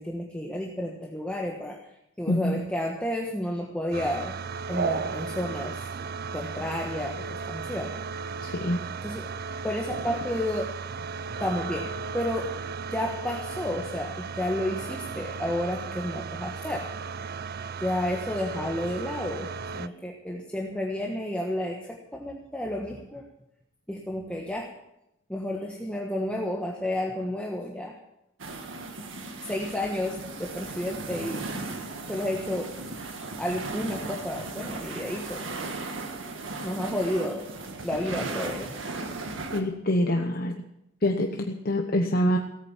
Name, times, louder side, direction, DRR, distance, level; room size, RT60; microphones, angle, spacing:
voice 1, 0.0-1.9 2.2-4.4 4.7-5.9 6.3-7.9 9.0-9.3 9.6-10.7 11.4-12.6 12.9-16.9 17.8-23.3 23.9-24.7 25.3-28.0 28.5-28.7 29.0-31.7 32.0-32.7 33.4-35.5 36.6-37.5 37.8-38.8, left 1 dB, 5° left, 0 dB, 1.3 m, -31 dB
voice 2, 2.3-2.6 8.4-8.8 39.5-40.7 41.0-42.4, left 1 dB, 50° left, 4 dB, 1.0 m, -25 dB
sound 1, 3.9-19.9, right 5 dB, 50° right, 0.5 m, -35 dB
sound 2, 28.4-39.6, right 3 dB, 80° right, 1.8 m, -36 dB
17.5 x 8.9 x 7.3 m, 0.85 s
head